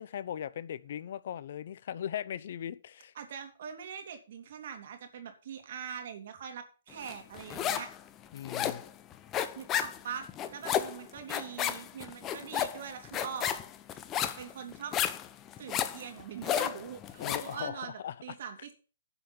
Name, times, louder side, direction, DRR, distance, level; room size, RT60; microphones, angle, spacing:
voice 1, 0.0-3.1 8.3-8.8 17.2-18.7, left 10 dB, 55° left, 0.8 m, -39 dB
voice 2, 3.1-7.9 9.5-13.6 14.4-14.9 15.6-18.7, right 7 dB, 55° right, 3.3 m, -42 dB
sound 1, 7.1-8.0 8.2-17.5, left 10 dB, 20° left, 1.0 m, -33 dB
11.5 x 6.0 x 7.3 m
hypercardioid pair, 140°, 0 cm